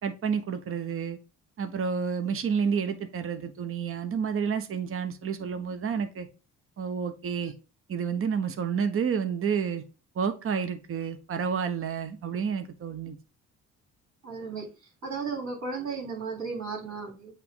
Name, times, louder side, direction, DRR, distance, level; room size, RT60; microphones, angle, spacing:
voice 1, 0.0-1.2 1.6-6.3 6.8-7.5 7.9-9.8 10.1-13.2, right 6 dB, 45° right, 0.9 m, -30 dB
voice 2, 14.2-14.7 15.0-17.3, right 4 dB, 65° right, 3.4 m, -34 dB
8.3 x 3.0 x 3.7 m
cardioid pair, 90°, 30 cm